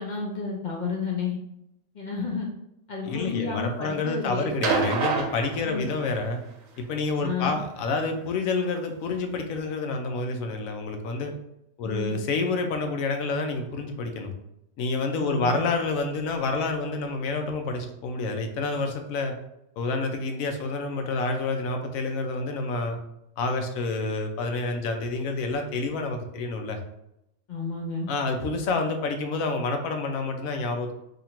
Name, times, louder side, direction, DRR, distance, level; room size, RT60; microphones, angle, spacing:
voice 1, 0.0-1.4 1.9-2.5 2.9-4.5 5.6-5.8 7.2-7.6 11.8-12.1 15.2-15.5 27.5-28.1, left 5 dB, 55° left, -1 dB, 0.5 m, -31 dB
voice 2, 3.0-6.4 6.8-11.3 11.8-14.3 14.8-19.3 19.8-23.0 23.4-26.8 28.1-30.9, left 3 dB, 85° left, 5 dB, 1.0 m, -28 dB
sound 1, 4.6-6.3 7.6-7.7, right 4 dB, 85° right, 1.0 m, -27 dB
2.8 x 2.5 x 4.3 m, 0.82 s
omnidirectional pair, 1.4 m